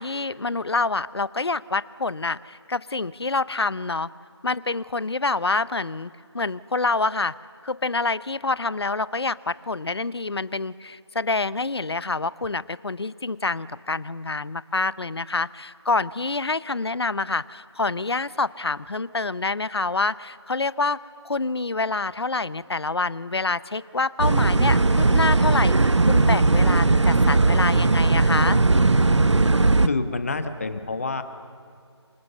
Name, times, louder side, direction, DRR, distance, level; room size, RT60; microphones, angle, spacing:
voice 1, 0.0-4.1 4.4-7.3 7.6-21.0 21.2-28.6, left 3 dB, 65° left, 18 dB, 0.8 m, -27 dB
sound 1, 24.2-29.9, right 3 dB, 80° right, 0.9 m, -18 dB
voice 2, 29.8-31.2, left 3 dB, 30° left, 9 dB, 1.2 m, -27 dB
27.5 x 25.5 x 6.9 m, 2.2 s
figure-of-eight pair, 170°, 15 cm